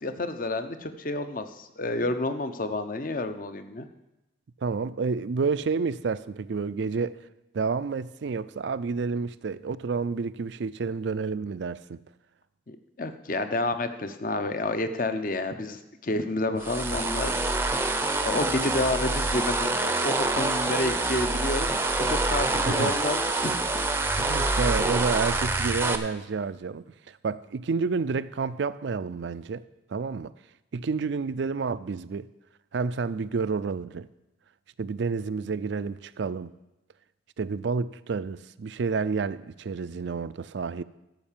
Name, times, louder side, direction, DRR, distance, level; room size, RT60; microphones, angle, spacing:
voice 1, 0.0-3.9 12.7-17.9 18.2-23.6, left 2 dB, 45° left, 0.8 m, -30 dB
voice 2, 4.6-7.2 7.5-12.0 22.5-23.0 24.1-29.6 29.9-30.3 30.7-32.3 32.7-34.1 34.8-36.5 37.4-40.8, right 4 dB, 65° right, 0.4 m, -29 dB
sound 1, 16.6-26.0, right 2 dB, 10° right, 0.6 m, -26 dB
13.0 x 5.8 x 7.3 m
head